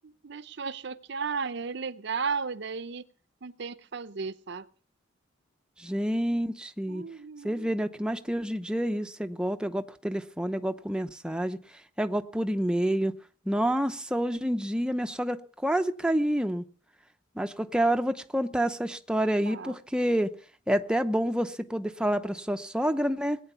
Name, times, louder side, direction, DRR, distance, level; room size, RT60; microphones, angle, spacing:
voice 1, 0.0-3.0 3.4-4.7 6.9-7.7 19.5-19.8, right 5 dB, 60° right, 0.7 m, -35 dB
voice 2, 5.8-7.0 7.4-11.6 12.0-13.1 13.5-16.6 17.4-20.3 20.7-23.4, right 1 dB, 5° right, 0.7 m, -28 dB
19.5 x 9.1 x 6.9 m
head